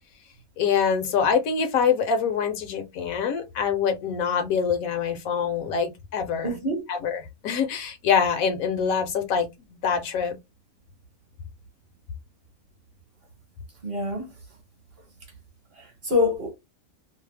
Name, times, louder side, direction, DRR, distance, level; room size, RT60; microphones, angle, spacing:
voice 1, 0.6-6.5 6.9-10.4, left 6 dB, 75° left, 1.0 m, -25 dB
voice 2, 6.4-6.8 13.8-14.3 15.8-16.5, left 2 dB, 45° right, 1.1 m, -25 dB
2.7 x 2.0 x 3.2 m
omnidirectional pair, 1.5 m